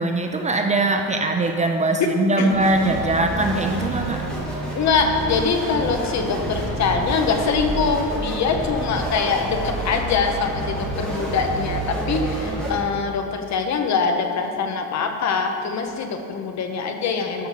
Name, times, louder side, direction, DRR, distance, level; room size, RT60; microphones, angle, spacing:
voice 1, 0.0-4.3, right 2 dB, 20° right, 4 dB, 0.5 m, -21 dB
voice 2, 2.0-2.6 4.7-17.5, left 5 dB, 50° left, 5 dB, 1.0 m, -23 dB
sound 1, 2.5-12.7, right 2 dB, ahead, 2.5 m, -28 dB
12.0 x 5.4 x 6.5 m, 2.4 s
cardioid pair, 165°, 35 cm